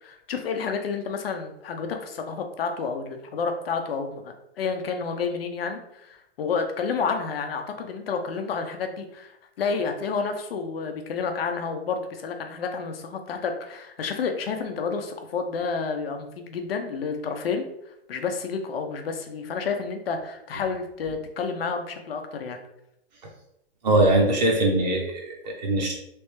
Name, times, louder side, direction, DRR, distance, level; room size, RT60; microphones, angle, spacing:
voice 1, 0.0-22.6, left 5 dB, 65° left, 5 dB, 0.7 m, -30 dB
voice 2, 23.8-25.9, right 1 dB, 45° right, -1 dB, 0.7 m, -21 dB
3.4 x 3.3 x 3.1 m, 0.81 s
hypercardioid pair, 180°, 31 cm